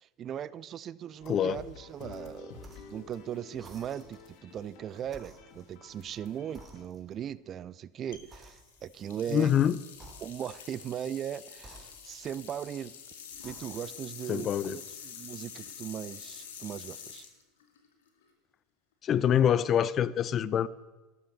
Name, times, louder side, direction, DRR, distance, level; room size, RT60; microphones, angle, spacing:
voice 1, 0.0-9.5 10.2-12.9 13.4-17.3, right 9 dB, 35° right, 0.5 m, -38 dB
sound 1, 1.2-6.8, left 5 dB, 55° left, 1.9 m, -50 dB
voice 2, 1.3-1.6 9.3-9.8 14.3-14.8 19.0-20.7, left 9 dB, 35° left, 0.6 m, -25 dB
sound 2, 2.6-3.0 3.6-4.3 5.1-6.2 6.6-7.3 8.3-9.1 9.9-10.7 11.6-12.7 13.3-14.0, right 2 dB, 15° right, 3.0 m, -54 dB
sound 3, 8.1-18.3, left 7 dB, 70° left, 2.2 m, -47 dB
12.5 x 12.5 x 6.6 m
figure-of-eight pair, 80°, 0 cm